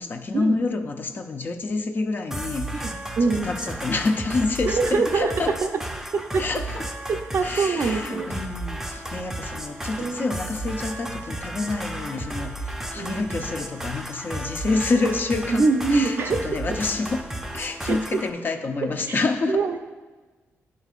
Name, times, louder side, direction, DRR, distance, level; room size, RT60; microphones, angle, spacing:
voice 1, 0.0-2.9 3.2-5.6 6.4-6.9 7.4-15.6 15.9-17.2 17.5-19.6, left 3 dB, 40° left, 5 dB, 0.6 m, -28 dB
sound 1, 2.3-18.3, right 1 dB, 5° right, 0.6 m, -33 dB
voice 2, 2.8-3.5 4.6-5.7 6.1-6.4 7.1-8.3 10.0-10.3 13.0-13.4 15.5-16.5 17.9-18.2 19.1-19.2 19.5-19.8, right 4 dB, 50° right, 6 dB, 0.6 m, -24 dB
11.0 x 5.3 x 2.4 m, 1.3 s
cardioid pair, 105°, 5 cm